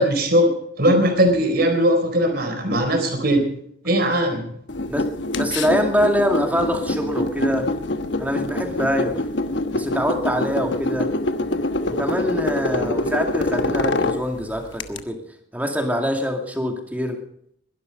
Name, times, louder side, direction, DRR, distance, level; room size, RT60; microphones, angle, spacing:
voice 1, 0.0-3.5 3.8-4.5, equal, 50° right, 5 dB, 4.1 m, -19 dB
sound 1, 4.7-15.0, left 2 dB, 60° left, 1.2 m, -25 dB
voice 2, 4.9-7.7 8.2-9.2 9.7-11.1 11.9-15.2 15.5-17.2, equal, 10° right, 3 dB, 2.5 m, -24 dB
21.5 x 12.0 x 5.4 m, 0.69 s
head